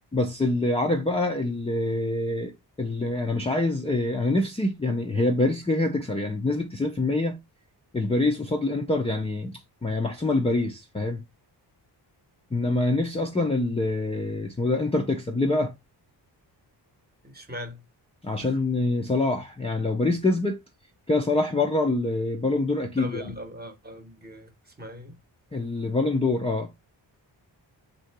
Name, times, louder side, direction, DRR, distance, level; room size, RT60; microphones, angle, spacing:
voice 1, 0.1-2.5 2.8-7.4 7.9-11.2 12.5-15.7 18.2-20.6 21.1-23.2 25.5-26.7, left 2 dB, 15° left, 0.4 m, -25 dB
voice 2, 17.2-17.8 18.4-18.5 23.0-25.2, equal, 20° right, 0.9 m, -40 dB
3.7 x 2.7 x 4.5 m
wide cardioid pair, 140°, 44 cm